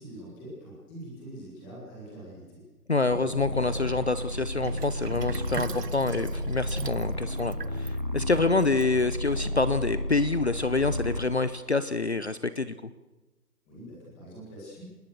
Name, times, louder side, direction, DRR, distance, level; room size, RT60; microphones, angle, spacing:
voice 1, 0.0-2.6 13.7-14.9, right 1 dB, 5° left, -5 dB, 1.8 m, -44 dB
voice 2, 2.9-12.7, left 3 dB, 45° left, 13 dB, 0.8 m, -27 dB
sound 1, 3.1-11.3, left 1 dB, 30° right, 0.6 m, -32 dB
Sink (filling or washing), 4.6-9.4, right 6 dB, 80° right, 1.2 m, -41 dB
25.0 x 20.0 x 6.4 m, 1.1 s
figure-of-eight pair, 175°, 47 cm